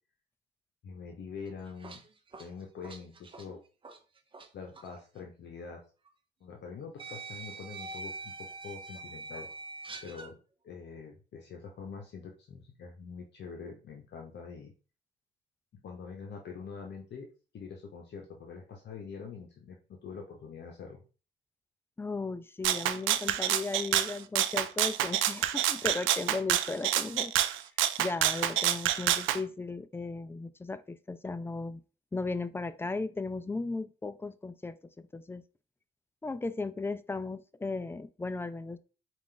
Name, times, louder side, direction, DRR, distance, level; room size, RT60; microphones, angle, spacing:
voice 1, 0.8-2.0 2.4-3.6 4.5-5.8 6.4-8.3 8.6-9.5 10.0-10.4 10.6-14.7 15.7-17.3 17.5-21.0, left 5 dB, 60° left, 0.8 m, -44 dB
sound 1, 1.5-4.5 4.7-4.9 6.1-6.2 7.0-10.3, right 3 dB, 25° right, 0.6 m, -44 dB
voice 2, 22.0-27.3 28.0-31.8 32.1-35.4 36.2-38.8, left 3 dB, 10° left, 0.3 m, -36 dB
Rattle (instrument), 22.6-29.4, right 12 dB, 80° right, 0.4 m, -28 dB
4.5 x 2.4 x 3.7 m
cardioid pair, 90°, 20 cm